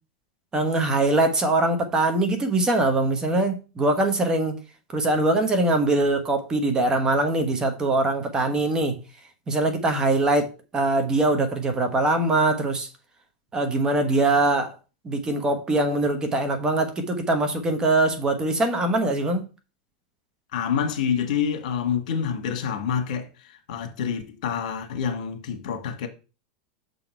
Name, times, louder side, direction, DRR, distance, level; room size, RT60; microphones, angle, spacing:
voice 1, 0.5-4.6 4.9-9.0 9.5-12.9 13.5-14.8 15.0-19.4, right 2 dB, 15° right, 1.1 m, -22 dB
voice 2, 20.5-26.1, left 7 dB, 70° left, 1.6 m, -27 dB
6.8 x 4.0 x 4.5 m
supercardioid pair, 150°, 4 cm